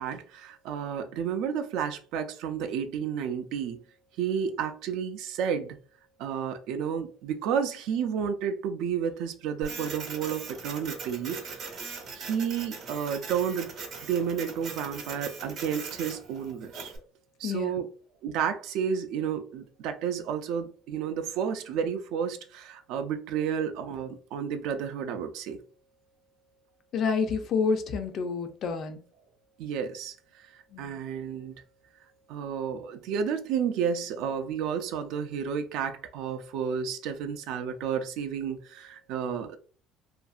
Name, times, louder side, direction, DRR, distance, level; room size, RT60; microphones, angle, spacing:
voice 1, 0.0-3.8 4.2-5.8 6.2-11.6 12.1-13.8 14.1-16.9 17.4-17.9 18.2-25.6 29.6-30.1 30.4-31.5 32.3-39.6, right 7 dB, 65° right, 0.4 m, -31 dB
Printer, 9.6-17.0, right 4 dB, 45° right, 0.8 m, -40 dB
voice 2, 17.4-17.8 26.9-29.0 30.7-31.0, left 5 dB, 40° left, 0.4 m, -29 dB
2.8 x 2.5 x 2.4 m
cardioid pair, 160°, 0 cm